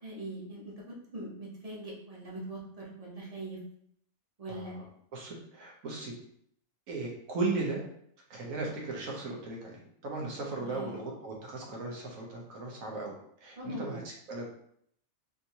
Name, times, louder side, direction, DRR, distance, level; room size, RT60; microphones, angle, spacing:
voice 1, 0.0-3.6 4.4-4.9 10.5-11.0 13.6-14.0, right 1 dB, 35° right, -3 dB, 0.7 m, -42 dB
voice 2, 5.1-6.1 6.9-7.8 8.3-13.1 13.4-14.0 14.3-14.5, right 3 dB, 85° right, -1 dB, 1.3 m, -36 dB
3.5 x 2.6 x 2.8 m, 0.70 s
omnidirectional pair, 1.4 m